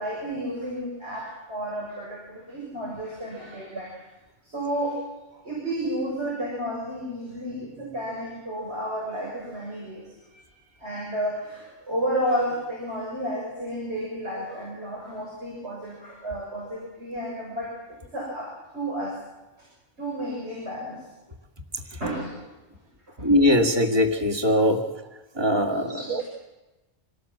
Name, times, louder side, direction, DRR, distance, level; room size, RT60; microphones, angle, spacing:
voice 1, 0.0-3.9 4.4-5.0 5.3-10.5 10.8-17.8 18.1-19.2 19.6-19.7 20.0-21.1 22.0-22.5 23.2-23.3 25.7-26.2, equal, 80° right, -4 dB, 7.5 m, -32 dB
voice 2, 23.2-24.8 25.4-26.2, left 1 dB, 25° right, 4 dB, 2.0 m, -21 dB
27.0 x 17.5 x 7.7 m, 1.1 s
omnidirectional pair, 1.1 m